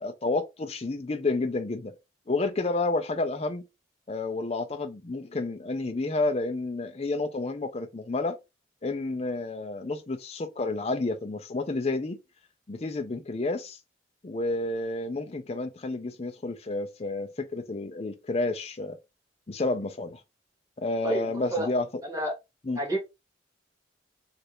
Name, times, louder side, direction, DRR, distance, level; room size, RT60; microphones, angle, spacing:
voice 1, 0.0-2.0 2.3-3.6 4.1-8.4 8.8-12.2 12.7-13.8 14.2-19.0 19.5-20.2 20.8-21.9 22.7-22.8, left 2 dB, 35° left, 0.5 m, -30 dB
voice 2, 21.0-21.7 22.0-22.3 22.7-23.0, right 1 dB, 20° right, 1.2 m, -29 dB
3.2 x 2.5 x 2.9 m
head